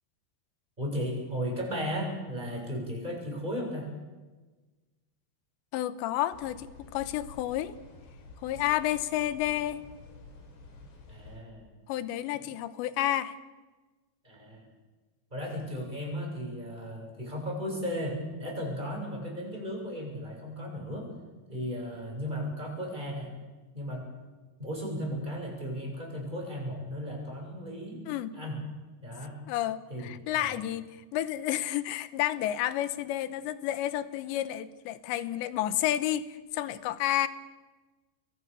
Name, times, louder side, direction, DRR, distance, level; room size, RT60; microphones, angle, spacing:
voice 1, 0.8-3.9 11.1-11.7 12.4-12.5 14.2-14.7 15.3-21.1 21.5-23.3 23.7-24.1 24.6-28.0 28.3-28.6 29.0-29.4 29.9-30.6, equal, 10° right, 0 dB, 6.9 m, -35 dB
voice 2, 5.7-7.7 8.4-9.8 11.9-13.4 28.1-28.4 29.5-37.3, left 13 dB, 85° left, 14 dB, 3.2 m, -30 dB
sound 1, 6.3-11.4, left 4 dB, 70° left, 5.9 m, -50 dB
28.5 x 22.0 x 6.8 m, 1.3 s
omnidirectional pair, 5.0 m